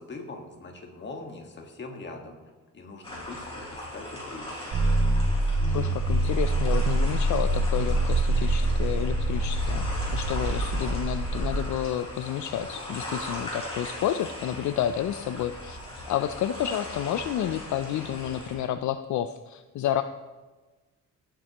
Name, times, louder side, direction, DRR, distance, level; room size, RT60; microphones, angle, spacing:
voice 1, 0.0-2.4 2.7-4.7, left 3 dB, 35° left, 2 dB, 1.5 m, -42 dB
sound 1, 3.0-18.5, left 1 dB, 20° left, 3.5 m, -39 dB
sound 2, 4.7-11.6, right 1 dB, 75° right, 2.3 m, -25 dB
voice 2, 5.7-15.8 16.1-20.0, left 10 dB, 65° left, 10 dB, 0.4 m, -30 dB
16.5 x 7.5 x 2.9 m, 1.3 s
wide cardioid pair, 160°, 31 cm